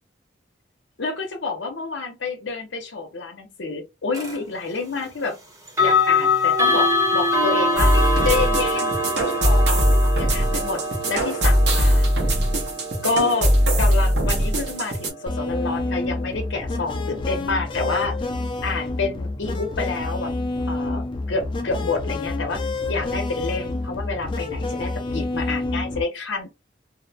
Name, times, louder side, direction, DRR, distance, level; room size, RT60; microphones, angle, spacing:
voice 1, 1.0-5.4 5.8-7.9 8.2-9.0 9.2-12.1 13.0-18.1 18.6-20.3 20.7-26.5, left 4 dB, 80° left, 0.7 m, -28 dB
sound 1, 4.1-4.4 5.7-16.5, left 2 dB, 15° right, 0.8 m, -24 dB
sound 2, 7.8-15.1, equal, 70° right, 0.9 m, -20 dB
sound 3, 15.3-26.0, left 2 dB, 25° left, 0.4 m, -28 dB
2.6 x 2.1 x 2.6 m
head